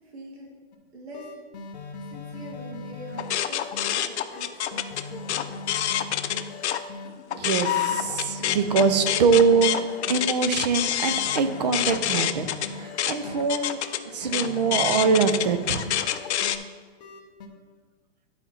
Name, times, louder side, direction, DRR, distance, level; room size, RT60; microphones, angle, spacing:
voice 1, 0.0-0.5 0.9-1.3 2.0-5.5, right 1 dB, 70° right, -1 dB, 2.4 m, -43 dB
sound 1, 0.7-0.8 1.1-3.9 4.3-7.1 7.5-10.3 10.7-13.4 13.8-16.6 17.0-17.5, left 3 dB, 40° left, 0.9 m, -40 dB
sound 2, 3.2-6.8 7.2-16.6, left 11 dB, 85° left, 0.6 m, -27 dB
voice 2, 7.3-13.8 14.1-15.8, right 5 dB, 40° right, 9 dB, 0.5 m, -23 dB
10.5 x 4.3 x 4.3 m, 1.5 s
hypercardioid pair, 175°, 33 cm